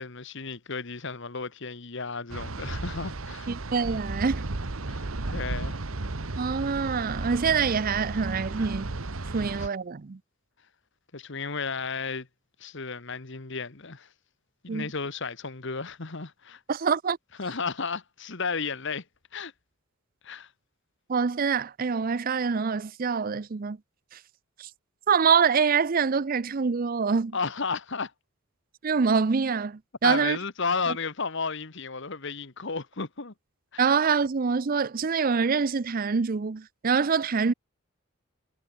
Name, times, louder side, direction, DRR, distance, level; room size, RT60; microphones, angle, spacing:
voice 1, 0.0-3.5 4.9-5.8 9.6-9.7 11.1-12.3 12.6-14.1 14.6-16.6 17.4-19.0 19.3-19.5 20.2-20.5 27.3-28.1 30.0-33.3 33.7-33.9, left 4 dB, 60° left, 1.5 m, -33 dB
sound 1, 2.3-9.7, right 2 dB, 75° right, 1.3 m, -34 dB
voice 2, 3.5-4.5 6.4-8.9 9.2-10.2 14.7-14.9 16.7-17.2 21.1-23.8 24.1-24.2 24.6-24.7 25.1-27.4 28.8-30.4 33.8-37.5, right 5 dB, 45° right, 0.5 m, -25 dB
head